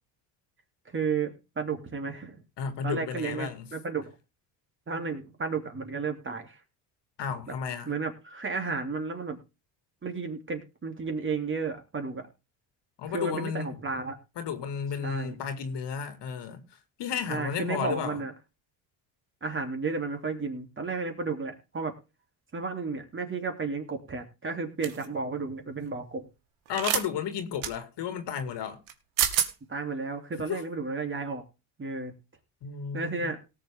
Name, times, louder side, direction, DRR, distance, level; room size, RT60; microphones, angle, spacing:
voice 1, 0.8-2.4 2.8-4.1 4.9-6.6 7.8-9.4 10.0-12.2 13.1-14.2 15.0-15.4 17.3-18.3 19.4-21.9 22.5-26.2 29.7-31.4 31.8-32.1 32.9-33.4, right 4 dB, 25° right, 3.0 m, -33 dB
voice 2, 2.6-3.7 7.2-7.9 13.0-13.8 14.4-16.6 17.0-18.2 26.7-28.8 30.5-30.6 32.6-33.3, left 7 dB, 60° left, 2.3 m, -33 dB
sound 1, 24.8-25.1 26.7-27.0 27.6-27.7 28.9-29.0 29.2-29.5, right 10 dB, 80° right, 2.1 m, -26 dB
18.0 x 7.3 x 3.6 m
cardioid pair, 105°, 47 cm